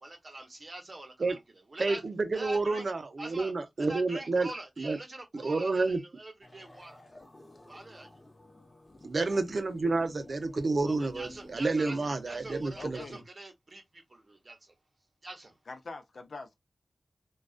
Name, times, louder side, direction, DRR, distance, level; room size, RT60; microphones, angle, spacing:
voice 1, 0.0-1.4 1.7-2.0 2.3-2.9 3.2-3.5 3.8-7.0 7.7-8.1 10.8-14.7 15.2-15.5, right 2 dB, 50° right, 0.9 m, -44 dB
voice 2, 1.8-4.5 4.8-5.0 5.3-6.0 9.0-13.0, right 3 dB, 65° right, 0.5 m, -29 dB
sound 1, 6.4-13.2, left 1 dB, 35° left, 0.7 m, -53 dB
voice 3, 12.7-13.2 15.7-16.6, left 3 dB, 80° left, 0.5 m, -43 dB
2.4 x 2.2 x 2.3 m
wide cardioid pair, 70°, 0 cm